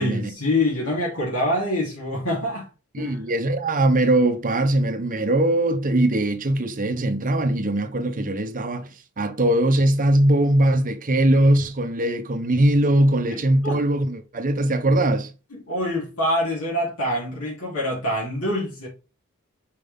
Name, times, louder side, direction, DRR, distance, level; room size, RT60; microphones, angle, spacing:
voice 1, 0.0-2.7 3.0-3.2 13.3-13.8 15.5-18.9, left 1 dB, 70° left, 3.3 m, -25 dB
voice 2, 2.9-15.3, right 1 dB, 40° right, 0.8 m, -21 dB
5.4 x 4.9 x 3.5 m
head